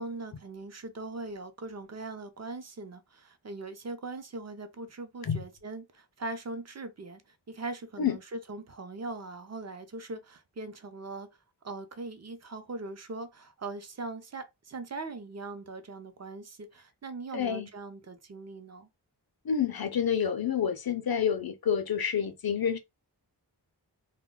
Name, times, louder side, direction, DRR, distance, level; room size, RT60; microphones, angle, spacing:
voice 1, 0.0-7.2 7.5-11.3 11.6-18.9, right 3 dB, 40° right, 0.6 m, -40 dB
voice 2, 17.3-17.7 19.4-22.8, left 8 dB, 60° left, 0.6 m, -28 dB
2.2 x 2.2 x 3.7 m
cardioid pair, 45°, 42 cm